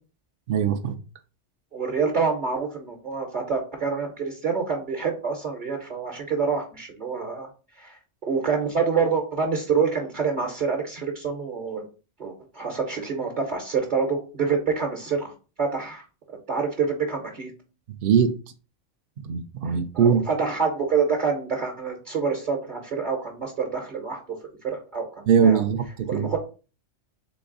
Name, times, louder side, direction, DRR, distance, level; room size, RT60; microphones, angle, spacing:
voice 1, 0.5-0.9 18.0-18.3 19.2-20.2 25.3-26.3, right 7 dB, 60° right, 0.6 m, -21 dB
voice 2, 1.7-7.5 7.8-8.0 8.3-11.8 12.2-15.3 15.6-16.0 16.5-17.5 19.9-24.4 24.6-25.6 26.1-26.4, right 5 dB, 45° right, 1.0 m, -27 dB
3.9 x 3.4 x 3.8 m
omnidirectional pair, 1.2 m